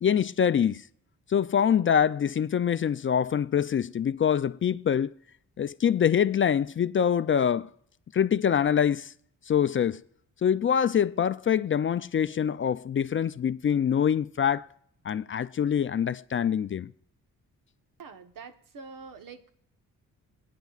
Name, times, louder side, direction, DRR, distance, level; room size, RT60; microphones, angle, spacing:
voice 1, 0.0-0.8 1.3-5.1 5.6-7.7 8.1-9.1 9.5-10.0 10.4-14.7 15.0-16.9, left 8 dB, 40° left, 0.4 m, -25 dB
voice 2, 18.0-19.5, right 5 dB, 70° right, 1.2 m, -45 dB
26.5 x 9.3 x 2.4 m
cardioid pair, 80°, 34 cm